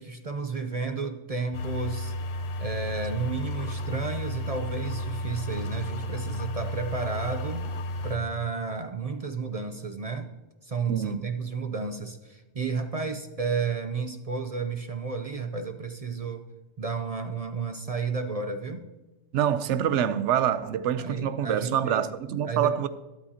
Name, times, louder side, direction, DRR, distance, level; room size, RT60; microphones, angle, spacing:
voice 1, 0.0-2.1 2.6-7.7 8.0-10.3 10.6-16.5 16.8-18.9 21.0-22.1 22.4-22.8, right 4 dB, 45° right, 0.5 m, -32 dB
sound 1, 1.5-8.2, left 1 dB, 85° left, 1.2 m, -33 dB
voice 2, 10.9-11.2 19.3-22.9, right 9 dB, 70° right, 0.9 m, -26 dB
13.0 x 12.0 x 2.8 m
omnidirectional pair, 1.3 m